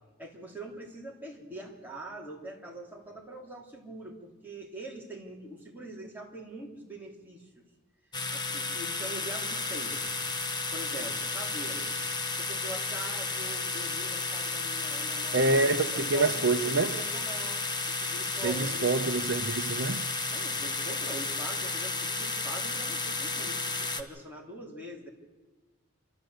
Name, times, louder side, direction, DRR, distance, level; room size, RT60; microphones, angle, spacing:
voice 1, 0.2-7.6 8.3-10.2 10.7-11.9 12.3-19.0 20.3-25.1, right 1 dB, 10° right, 3.1 m, -43 dB
sound 1, 8.1-24.0, left 3 dB, 20° left, 1.1 m, -33 dB
voice 2, 15.3-16.9 18.4-20.0, right 3 dB, 60° right, 0.8 m, -26 dB
28.5 x 13.0 x 7.9 m
head